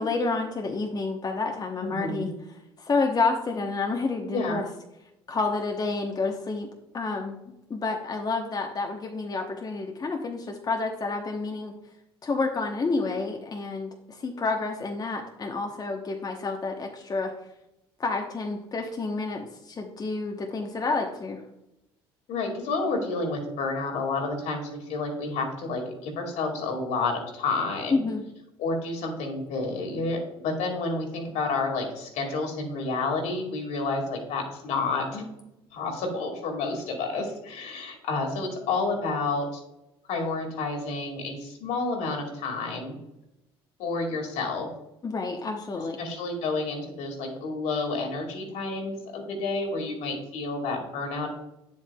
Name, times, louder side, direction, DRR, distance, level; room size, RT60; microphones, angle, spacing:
voice 1, 0.0-2.3 2.8-4.7 5.3-6.7 6.9-11.7 12.2-17.3 18.0-21.4 27.9-28.2 45.0-46.0, left 3 dB, 30° left, 2 dB, 0.9 m, -29 dB
voice 2, 1.8-2.3 4.3-4.6 22.3-28.0 28.6-35.3 35.7-39.6 40.1-42.9 43.8-44.7 46.0-51.3, left 3 dB, 65° left, 2 dB, 2.0 m, -30 dB
8.9 x 7.5 x 2.3 m, 0.89 s
hypercardioid pair, 65°, 13 cm